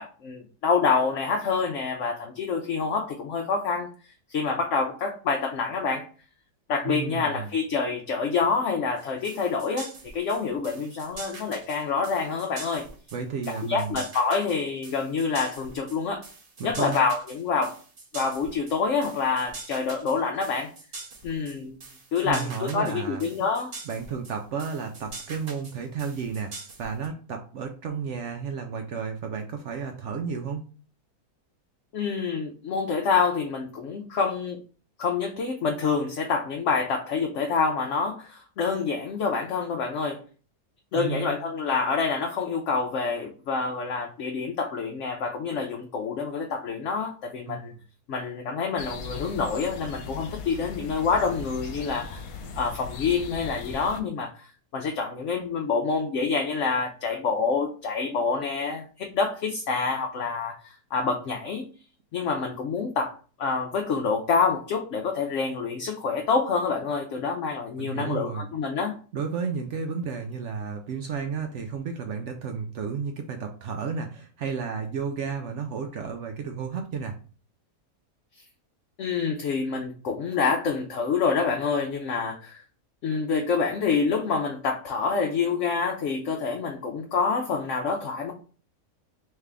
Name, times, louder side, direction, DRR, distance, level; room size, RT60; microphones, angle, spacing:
voice 1, 0.0-3.9 4.3-6.1 6.7-12.9 13.5-16.2 16.6-17.8 18.1-20.7 21.2-21.8 22.1-23.7 31.9-34.6 35.0-40.2 40.9-47.7 48.1-52.2 52.6-61.7 62.1-68.9 79.0-82.6 83.0-88.3, left 5 dB, 65° left, 2 dB, 0.9 m, -27 dB
voice 2, 6.8-7.5 13.1-14.0 16.6-17.0 22.2-23.3 23.9-26.5 26.8-30.7 40.9-41.4 47.5-47.7 67.8-68.4 69.1-77.2, right 6 dB, 65° right, 4 dB, 0.7 m, -32 dB
sound 1, 9.0-27.1, right 3 dB, 40° right, 1.0 m, -43 dB
sound 2, 48.8-54.0, left 5 dB, 80° left, 1.2 m, -38 dB
3.3 x 3.3 x 3.6 m, 0.39 s
omnidirectional pair, 1.6 m